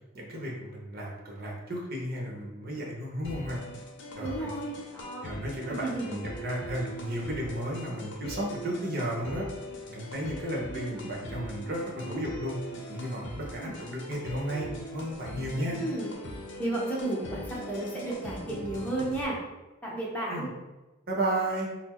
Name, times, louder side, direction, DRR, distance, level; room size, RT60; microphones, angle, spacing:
voice 1, 0.1-3.6 4.2-4.5 5.2-9.5 9.9-12.6 12.9-15.8 20.3-20.5 21.1-21.7, right 1 dB, 50° right, -2 dB, 1.0 m, -33 dB
sound 1, 3.2-19.2, equal, 60° left, 0.7 m, -41 dB
voice 2, 4.2-5.4 5.7-6.2 10.7-11.0 13.6-13.7 15.7-16.1 16.6-19.4 19.8-20.5, right 2 dB, 10° left, -5 dB, 0.8 m, -33 dB
4.2 x 2.0 x 4.3 m, 1.1 s
head